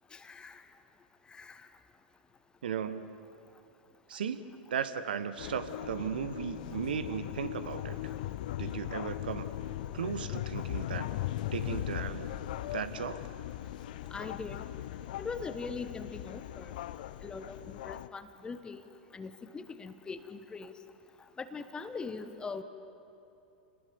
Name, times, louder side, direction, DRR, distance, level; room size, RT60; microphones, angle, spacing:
voice 1, 0.1-0.6 1.3-1.7 14.1-14.6 15.2-16.7 17.2-18.8 19.1-20.8 21.4-22.6, left 4 dB, 15° left, 10 dB, 1.2 m, -41 dB
voice 2, 2.6-3.2 4.1-4.4 4.7-8.0 8.6-9.5 9.9-11.1 11.5-12.3 12.7-13.2, right 7 dB, 65° right, 11 dB, 1.4 m, -36 dB
sound 1, 5.4-18.1, left 13 dB, 55° left, 0.7 m, -39 dB
29.5 x 20.5 x 7.1 m, 2.8 s
figure-of-eight pair, 90°, 5 cm